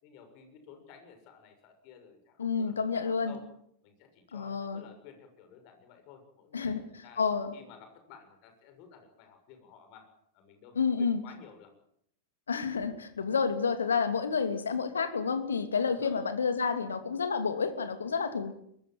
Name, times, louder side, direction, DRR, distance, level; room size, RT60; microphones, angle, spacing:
voice 1, 0.0-3.4 3.8-7.2 7.5-10.1 10.3-11.7 15.9-16.2, left 7 dB, 45° left, 7 dB, 6.8 m, -54 dB
voice 2, 2.4-3.4 4.3-4.8 6.5-6.8 7.2-7.5 10.7-11.2 12.5-18.5, left 5 dB, 70° left, 9 dB, 2.9 m, -29 dB
24.0 x 21.5 x 7.8 m, 0.70 s
figure-of-eight pair, 90°, 0 cm